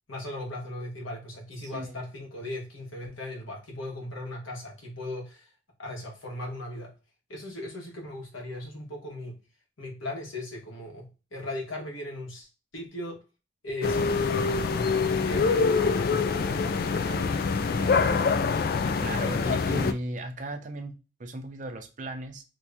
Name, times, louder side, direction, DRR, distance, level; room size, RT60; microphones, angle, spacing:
voice 1, 0.1-5.4 5.8-6.9 7.3-9.4 9.8-12.5 12.7-13.2 13.6-18.4, left 1 dB, 85° left, 1.2 m, -38 dB
voice 2, 1.6-2.0 16.9-17.3 19.0-22.4, right 1 dB, 40° right, 0.5 m, -36 dB
sound 1, 13.8-19.9, left 4 dB, 50° left, 0.3 m, -25 dB
2.9 x 2.7 x 3.4 m
head